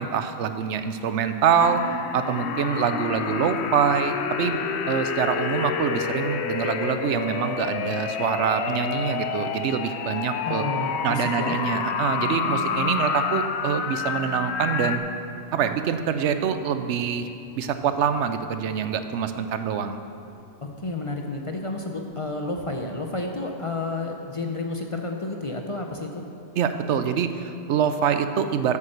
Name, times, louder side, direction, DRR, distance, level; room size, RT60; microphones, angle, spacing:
voice 1, 0.0-1.8 2.1-4.6 4.9-10.7 11.0-15.0 15.5-17.3 17.6-20.0 26.6-28.8, right 7 dB, 85° right, 9 dB, 0.9 m, -25 dB
sound 1, 1.6-15.0, left 6 dB, 75° left, 0.9 m, -29 dB
voice 2, 10.4-11.6 20.6-26.2, left 2 dB, 35° left, 2 dB, 0.6 m, -31 dB
sound 2, 11.3-21.5 22.1-22.4, right 2 dB, 55° right, 1.4 m, -44 dB
8.4 x 7.4 x 6.6 m, 2.6 s
omnidirectional pair, 1.2 m